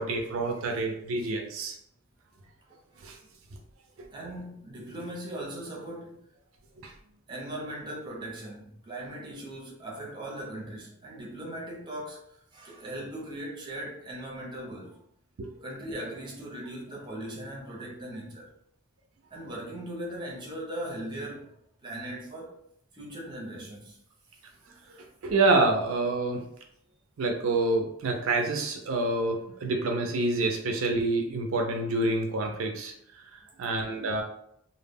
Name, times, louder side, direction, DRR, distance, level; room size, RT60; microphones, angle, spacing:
voice 1, 0.0-1.8 3.0-3.2 6.8-6.9 15.4-15.5 25.2-26.4 27.2-32.9 33.6-34.2, right 2 dB, 75° right, 0.4 m, -27 dB
voice 2, 4.1-6.2 7.3-15.0 15.6-18.5 19.3-21.5 21.8-22.6 22.9-24.0 24.6-24.8, right 1 dB, 20° right, 0.6 m, -39 dB
2.1 x 2.0 x 3.4 m
head